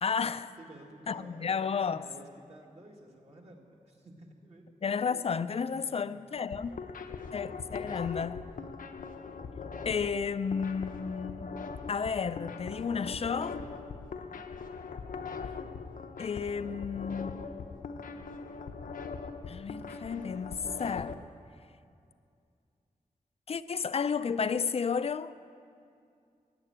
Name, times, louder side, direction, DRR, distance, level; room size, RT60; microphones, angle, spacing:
voice 1, 0.0-0.5 1.1-2.1 4.8-6.7 7.3-8.5 9.9-11.5 11.9-13.6 16.2-17.4 19.5-21.3 23.5-25.3, left 6 dB, 45° left, 0.4 m, -32 dB
voice 2, 0.6-1.5 1.8-4.6 5.8-6.1 6.6-7.3 14.3-14.4, right 1 dB, 50° right, 1.9 m, -53 dB
sound 1, 6.4-21.1, left 5 dB, 80° left, 0.7 m, -41 dB
15.5 x 8.9 x 8.8 m
wide cardioid pair, 145°, 14 cm